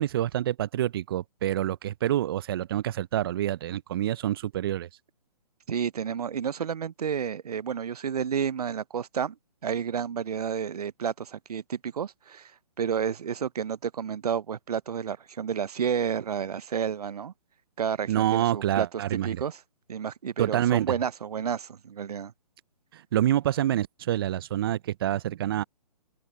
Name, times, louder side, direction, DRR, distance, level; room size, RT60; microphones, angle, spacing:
voice 1, 0.0-4.9 18.1-19.4 20.4-20.9 22.9-25.6, right 12 dB, 35° right, 0.6 m, -27 dB
voice 2, 5.7-9.3 9.6-12.5 12.8-17.3 17.8-18.9 19.2-19.5 19.9-22.3, right 7 dB, 65° right, 0.8 m, -30 dB
open air
hypercardioid pair, 140°, 21 cm